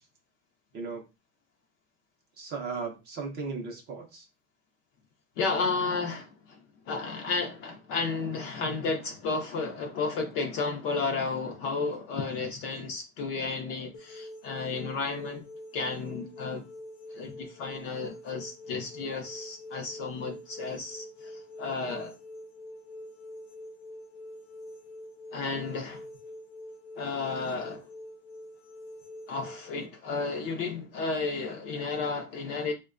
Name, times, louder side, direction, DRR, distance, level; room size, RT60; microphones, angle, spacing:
voice 1, 2.4-4.3, right 4 dB, 25° right, 0.5 m, -36 dB
voice 2, 5.4-15.4 15.7-16.6 17.1-22.2 25.3-26.1 27.0-27.9 29.3-32.7, left 4 dB, 35° left, 0.4 m, -32 dB
sound 1, 13.9-29.9, left 1 dB, 70° left, 0.8 m, -45 dB
4.3 x 2.2 x 2.4 m
supercardioid pair, 155°, 42 cm